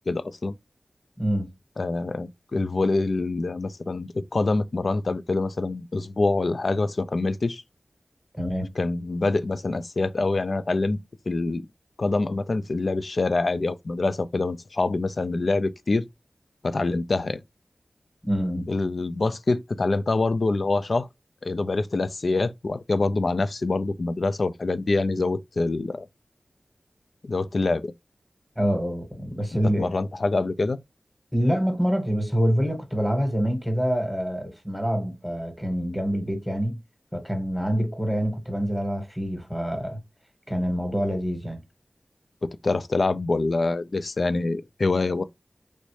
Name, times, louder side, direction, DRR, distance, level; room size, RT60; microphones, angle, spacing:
voice 1, 0.1-0.6 1.8-7.6 8.8-11.0 11.3-11.7 12.0-16.0 16.6-17.4 18.7-21.1 21.4-26.1 27.2-27.9 29.8-30.8 42.4-45.2, left 3 dB, 65° left, 0.3 m, -25 dB
voice 2, 1.2-1.5 8.3-8.7 18.2-18.7 28.5-29.9 31.3-36.8 37.1-40.0 40.5-41.6, equal, 5° left, 1.4 m, -26 dB
3.1 x 2.6 x 3.1 m
wide cardioid pair, 65°, 0 cm